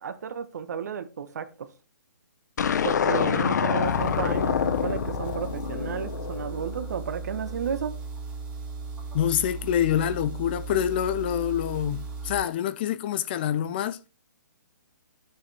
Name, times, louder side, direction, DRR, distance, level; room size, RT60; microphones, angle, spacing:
voice 1, 0.0-1.7 2.8-7.9, right 7 dB, 60° right, 1.3 m, -33 dB
sound 1, 2.6-7.0, left 7 dB, 65° left, 0.8 m, -26 dB
sound 2, 3.8-12.4, right 4 dB, 10° right, 2.1 m, -37 dB
voice 2, 9.1-14.0, left 10 dB, 30° left, 0.5 m, -26 dB
10.0 x 6.7 x 3.4 m
hypercardioid pair, 155°, 10 cm